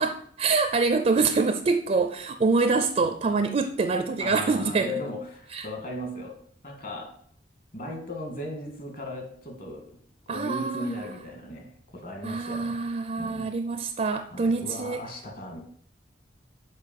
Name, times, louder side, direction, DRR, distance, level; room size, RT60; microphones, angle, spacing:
voice 1, 0.0-4.9 5.5-5.7 10.3-11.1 12.2-15.0, right 4 dB, 35° right, 8 dB, 0.4 m, -25 dB
voice 2, 4.2-6.4 6.6-7.1 7.7-10.0 10.3-12.9 13.2-13.5 14.3-15.6, left 1 dB, 50° left, 3 dB, 1.7 m, -37 dB
6.5 x 5.2 x 5.2 m, 0.64 s
head